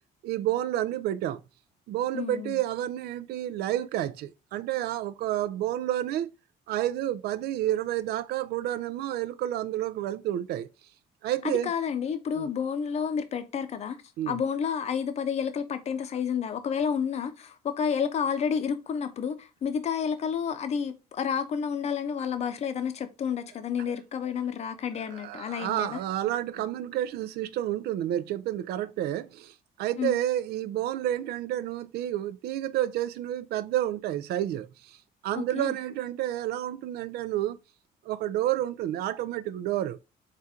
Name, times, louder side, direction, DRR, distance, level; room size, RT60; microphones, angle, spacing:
voice 1, 0.2-1.4 1.9-6.3 6.7-10.7 11.2-11.7 12.3-12.5 14.2-14.4 25.1-35.0 35.2-37.6 38.1-40.0, right 12 dB, 70° right, 0.4 m, -30 dB
voice 2, 2.1-2.6 11.3-14.0 14.3-26.0 30.0-30.2 35.3-35.8, left 7 dB, 40° left, 0.6 m, -30 dB
4.2 x 2.5 x 3.5 m
cardioid pair, 110°, 17 cm